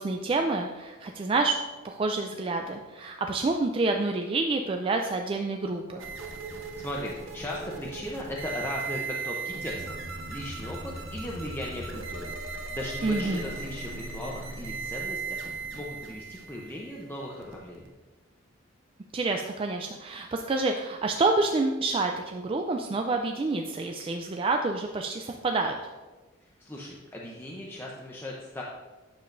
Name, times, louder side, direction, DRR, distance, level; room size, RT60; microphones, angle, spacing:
voice 1, 0.0-1.6 1.8-6.1 13.0-13.4 19.1-25.8, right 3 dB, 25° right, 3 dB, 0.3 m, -28 dB
sound 1, 6.0-17.9, right 4 dB, 85° right, 0.8 m, -37 dB
voice 2, 6.5-17.9 26.6-28.6, left 1 dB, 10° left, -4 dB, 0.6 m, -38 dB
9.0 x 7.2 x 2.6 m, 1.3 s
head